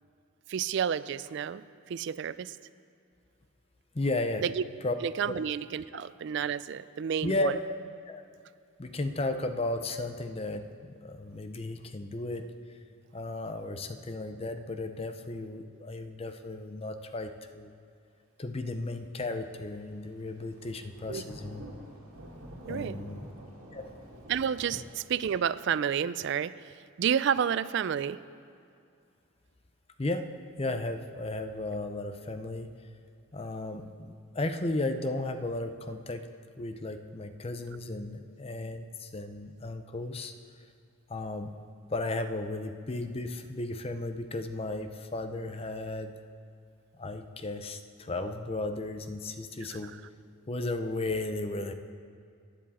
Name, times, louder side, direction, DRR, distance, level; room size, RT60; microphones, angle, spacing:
voice 1, 0.5-2.6 4.4-4.6 5.0-7.6 21.1-21.2 22.7-23.0 24.3-26.5 27.0-28.2 49.8-49.9, right 8 dB, 55° right, 16 dB, 0.3 m, -30 dB
voice 2, 3.9-4.4 4.8-4.9 7.2-7.5 8.1-8.2 8.8-12.5 13.1-17.7 18.4-21.7 22.7-23.3 23.7-23.9 24.7-24.8 30.0-30.3 30.6-32.7 33.3-36.3 36.6-40.3 41.1-41.6 41.9-46.1 47.0-49.9 50.5-51.7, left 2 dB, 25° left, 8 dB, 0.5 m, -34 dB
Thunder / Rain, 20.3-25.8, right 1 dB, 85° right, 1.9 m, -48 dB
15.0 x 9.8 x 4.2 m, 2.4 s
head